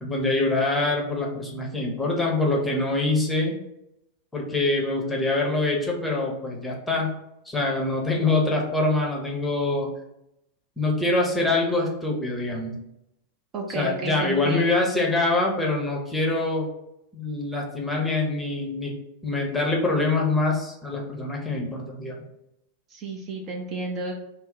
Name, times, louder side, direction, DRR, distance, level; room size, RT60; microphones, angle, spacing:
voice 1, 0.0-3.5 4.3-7.2 7.5-9.9 10.8-12.8 13.7-16.7 17.1-19.0 19.2-22.2, left 2 dB, 10° left, -1 dB, 0.7 m, -24 dB
voice 2, 13.5-14.9 22.9-24.1, right 2 dB, 35° right, 1 dB, 0.5 m, -32 dB
2.6 x 2.0 x 3.8 m, 0.81 s
figure-of-eight pair, 90°, 0 cm